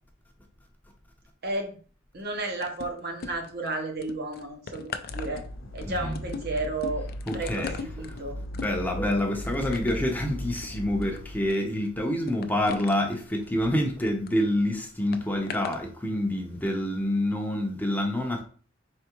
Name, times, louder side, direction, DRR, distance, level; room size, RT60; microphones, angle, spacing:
voice 1, 1.4-1.8 2.1-5.4 5.7-7.1 7.3-8.4, right 2 dB, 55° right, 0.9 m, -32 dB
sound 1, 2.6-3.7 4.0-14.4 15.1-15.8 16.5-16.7, left 5 dB, 50° left, 0.4 m, -40 dB
sound 2, 5.1-11.5, equal, 85° left, 0.7 m, -38 dB
voice 2, 5.8-6.2 7.3-7.8 8.1-8.2 8.5-18.4, left 1 dB, 10° left, 0.6 m, -27 dB
4.5 x 3.4 x 3.0 m
head